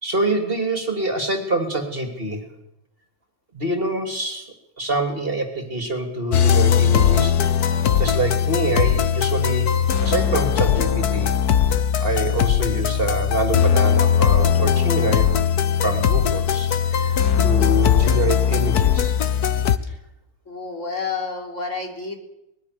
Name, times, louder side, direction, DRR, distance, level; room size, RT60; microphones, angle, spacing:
voice 1, 0.0-2.5 3.5-7.5 8.0-9.7 10.0-11.3 12.0-15.4 15.8-19.2, right 2 dB, 35° right, 6 dB, 3.1 m, -26 dB
sound 1, 6.3-19.8, left 8 dB, 90° left, 1.6 m, -19 dB
voice 2, 20.5-22.2, left 4 dB, 55° left, 3 dB, 3.9 m, -30 dB
24.0 x 20.5 x 6.8 m, 0.86 s
omnidirectional pair, 1.6 m